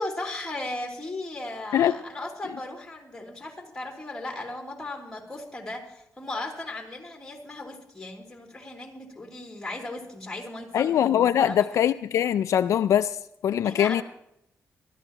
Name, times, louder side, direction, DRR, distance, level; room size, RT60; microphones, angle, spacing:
voice 1, 0.0-11.7 13.6-14.0, left 2 dB, 10° left, 3.0 m, -36 dB
voice 2, 10.7-13.2 13.4-14.0, left 10 dB, 70° left, 0.4 m, -22 dB
22.5 x 13.0 x 2.9 m
wide cardioid pair, 140°, 5 cm